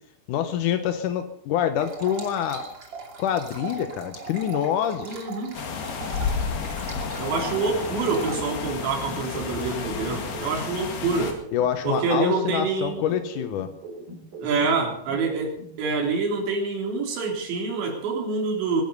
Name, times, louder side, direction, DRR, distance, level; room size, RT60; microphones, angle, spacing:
voice 1, 0.3-2.7 3.2-5.3 11.5-13.7, left 9 dB, 80° left, 9 dB, 1.8 m, -26 dB
sound 1, 1.8-8.4, right 5 dB, 30° right, 2.6 m, -39 dB
voice 2, 5.0-5.6 7.2-11.4 11.9-13.0 14.4-18.8, right 4 dB, 85° right, 1 dB, 5.6 m, -26 dB
sound 2, 5.5-11.3, left 5 dB, 65° left, 4.0 m, -31 dB
sound 3, 7.8-10.8 11.1-14.8 15.1-15.8, right 2 dB, 70° right, 5.2 m, -41 dB
22.5 x 10.5 x 5.4 m, 0.62 s
omnidirectional pair, 5.0 m